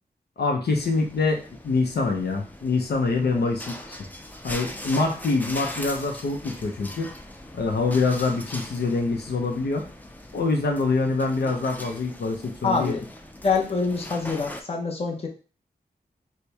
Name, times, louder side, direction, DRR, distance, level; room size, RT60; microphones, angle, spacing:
voice 1, 0.4-4.1 4.4-7.1 7.5-9.8 10.3-13.0, left 3 dB, 85° left, 3 dB, 0.6 m, -25 dB
sound 1, 0.7-14.6, left 1 dB, 10° left, 0.4 m, -40 dB
voice 2, 12.6-13.0 13.4-15.3, left 4 dB, 35° left, 0 dB, 0.8 m, -26 dB
4.3 x 2.2 x 3.3 m, 0.36 s
wide cardioid pair, 125°, 16 cm